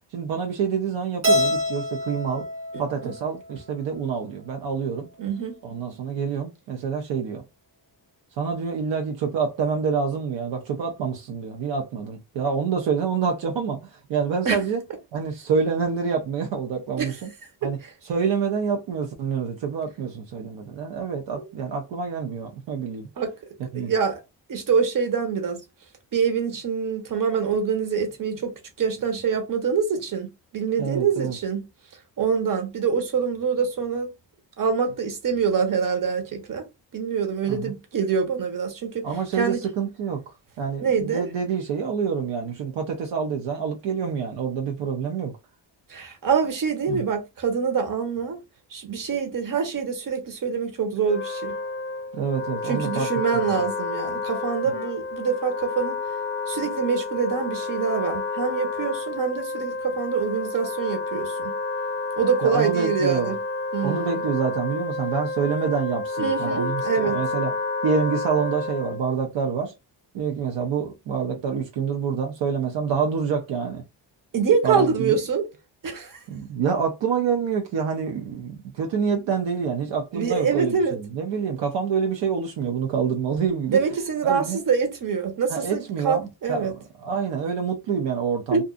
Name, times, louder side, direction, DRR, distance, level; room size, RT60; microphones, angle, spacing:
voice 1, 0.1-2.5 2.8-5.1 5.6-7.4 8.4-14.8 15.1-17.3 17.6-17.8 18.0-23.1 23.7-23.9 30.8-31.4 37.5-37.7 39.0-45.3 46.9-47.0 52.1-53.1 53.5-53.6 62.4-63.3 63.8-67.5 67.8-69.7 70.1-73.8 74.6-75.2 76.3-83.8 84.2-84.6 85.5-88.6, right 6 dB, 80° right, 0.7 m, -27 dB
Keyboard (musical), 1.2-3.6, left 1 dB, 30° right, 0.8 m, -26 dB
voice 2, 5.2-5.5 14.4-14.6 17.0-17.1 21.3-21.5 23.2-23.3 23.7-24.2 24.5-25.6 26.1-28.5 28.8-30.3 30.5-31.6 32.2-34.1 34.6-36.6 36.9-39.0 39.4-39.6 40.8-41.3 45.9-48.4 48.7-51.5 52.6-56.0 56.5-61.5 62.2-63.4 63.7-64.2 66.2-67.2 74.3-75.4 75.8-76.2 80.1-81.0 83.7-86.7 88.5-88.6, right 6 dB, 45° right, 1.1 m, -25 dB
Wind instrument woodwind instrument, 51.0-69.1, left 3 dB, 30° left, 0.4 m, -30 dB
2.6 x 2.4 x 2.4 m
cardioid pair, 80°, 44 cm